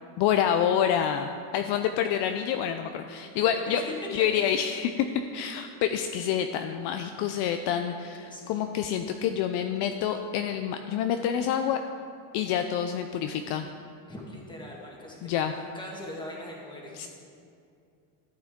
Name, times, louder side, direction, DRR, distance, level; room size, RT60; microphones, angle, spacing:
voice 1, 0.2-3.8 4.1-5.1 5.3-11.8 12.3-13.7 15.2-15.5 16.9-17.1, left 9 dB, 55° left, 7 dB, 0.6 m, -27 dB
voice 2, 3.4-3.8 8.2-8.6 14.1-17.1, left 1 dB, 10° left, -2 dB, 1.7 m, -42 dB
13.5 x 8.7 x 3.6 m, 2.4 s
cardioid pair, 145°, 49 cm